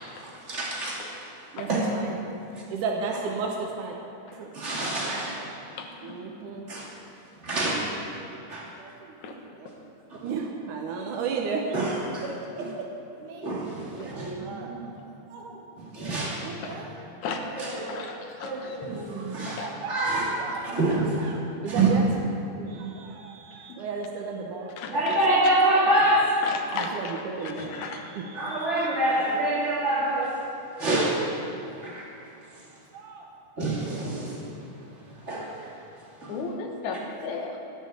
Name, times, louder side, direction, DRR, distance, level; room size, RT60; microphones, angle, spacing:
voice 1, 0.5-1.0 1.7-1.8 4.5-5.4 6.7-6.9 7.4-7.8 8.5-8.7 11.7-12.2 12.6-12.7 13.4-14.3 15.9-16.5 17.6-18.0 18.4-19.6 19.9-21.2 21.7-21.9 24.9-26.4 28.3-30.4 30.8-31.2 31.8-32.1 33.6-34.4 35.3-35.5, right 1 dB, 25° right, -5 dB, 2.5 m, -26 dB
voice 2, 1.5-2.1 2.7-3.9 4.3-4.5 5.2-5.4 6.0-6.6 8.1-8.4 8.8-9.7 10.2-12.1 13.2-13.5 13.9-14.9 15.3-15.6 16.1-17.1 17.8-18.5 19.1-20.1 20.4-22.0 22.5-24.7 25.3-25.4 26.7-28.7 29.8-29.9 32.9-33.3, right 4 dB, 85° right, -1 dB, 2.5 m, -35 dB
voice 3, 17.9-18.8 19.5-19.7 24.8-25.2 26.4-28.1 28.7-28.9 36.3-37.5, left 4 dB, 70° left, 3 dB, 2.5 m, -35 dB
13.0 x 6.5 x 9.4 m, 2.8 s
omnidirectional pair, 3.6 m